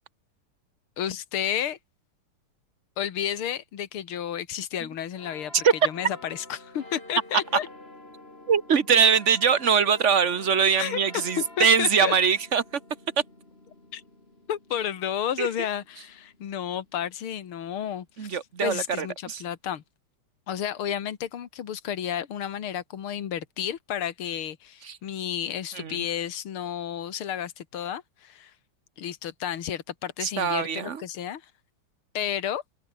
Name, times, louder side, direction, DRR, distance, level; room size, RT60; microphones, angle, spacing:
voice 1, 1.0-1.8 3.0-5.5 5.8-7.7 10.8-12.1 13.9-14.0 14.5-19.8 20.5-28.5 29.0-31.5 32.1-32.6, left 9 dB, 75° left, 2.5 m, -32 dB
sound 1, 5.2-18.1 18.7-18.8, left 2 dB, 25° left, 5.2 m, -49 dB
voice 2, 8.5-12.6 15.4-15.5 18.2-19.4 24.8-25.0 25.7-26.0 30.2-31.0, right 6 dB, 40° right, 1.2 m, -22 dB
omnidirectional pair, 2.4 m